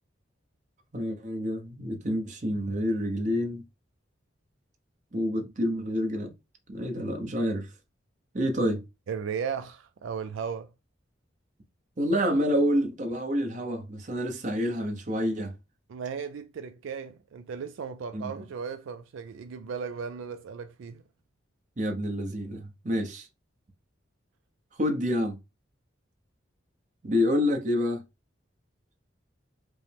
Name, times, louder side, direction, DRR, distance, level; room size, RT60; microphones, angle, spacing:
voice 1, 0.9-3.6 5.1-6.3 6.7-7.7 8.3-8.8 12.0-15.5 18.1-18.3 21.8-23.3 24.8-25.4 27.0-28.0, equal, 40° right, 0.8 m, -28 dB
voice 2, 9.1-10.7 15.9-21.0, right 6 dB, 80° right, 0.4 m, -36 dB
5.1 x 2.1 x 3.4 m
head